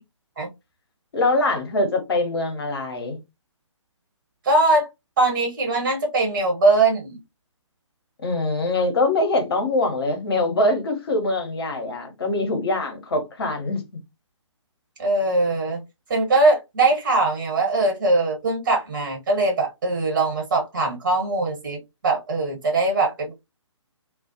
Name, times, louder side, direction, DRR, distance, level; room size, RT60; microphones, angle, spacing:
voice 1, 1.1-3.2 8.2-13.8, left 2 dB, 50° left, 0.8 m, -23 dB
voice 2, 4.4-4.9 5.2-7.2 15.0-15.8 16.1-23.3, right 2 dB, 40° right, 1.2 m, -21 dB
2.3 x 2.1 x 2.7 m
figure-of-eight pair, 135°, 16 cm